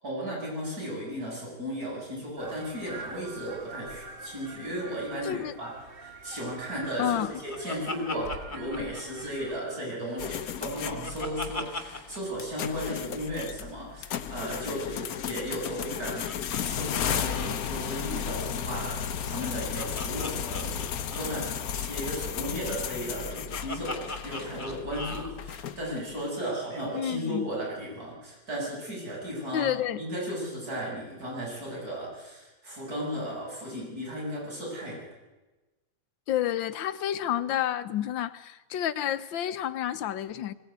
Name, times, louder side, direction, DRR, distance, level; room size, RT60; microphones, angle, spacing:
voice 1, 0.0-5.7 6.0-29.7 30.0-35.1, equal, 50° right, 8.5 m, -35 dB
sound 1, 2.4-9.6, right 3 dB, 30° right, 1.7 m, -45 dB
voice 2, 5.2-5.5 7.0-7.3 26.9-27.5 29.5-30.0 36.3-40.5, left 11 dB, 80° left, 1.6 m, -29 dB
Laughter, 6.8-9.8 10.1-12.2 12.4-12.5 12.7-13.0 14.2-16.6 16.9-17.0 17.3-17.6 18.7-21.5 22.5-25.3, left 2 dB, 25° left, 2.1 m, -40 dB
sound 2, 10.2-26.1, left 8 dB, 60° left, 1.2 m, -34 dB
20.5 x 17.0 x 9.5 m
omnidirectional pair, 2.0 m